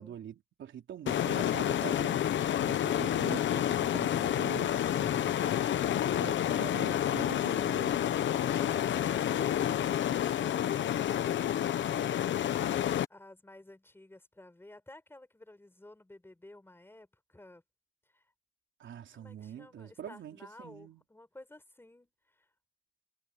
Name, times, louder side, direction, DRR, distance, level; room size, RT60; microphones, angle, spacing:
voice 1, 0.0-2.2 2.6-5.4 6.1-8.0 18.8-21.0, right 9 dB, 85° right, 3.9 m, -44 dB
sound 1, 1.1-13.0, left 10 dB, 85° left, 0.9 m, -29 dB
voice 2, 13.1-17.6 18.1-18.2 19.1-22.5, left 1 dB, 10° left, 5.2 m, -53 dB
wide cardioid pair, 120°, 19 cm